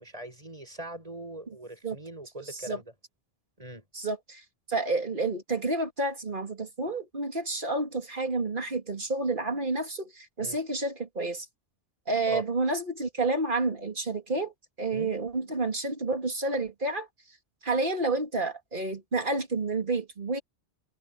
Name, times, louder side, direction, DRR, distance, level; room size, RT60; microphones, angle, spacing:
voice 1, 0.0-2.9 3.6-3.8 10.4-10.6 12.3-12.4 14.9-15.1, right 1 dB, 30° right, 8.2 m, -41 dB
voice 2, 2.5-2.8 3.9-4.4 4.7-11.5 12.1-14.5 14.8-17.1 17.6-20.4, right 3 dB, 50° right, 2.7 m, -30 dB
omnidirectional pair, 1.1 m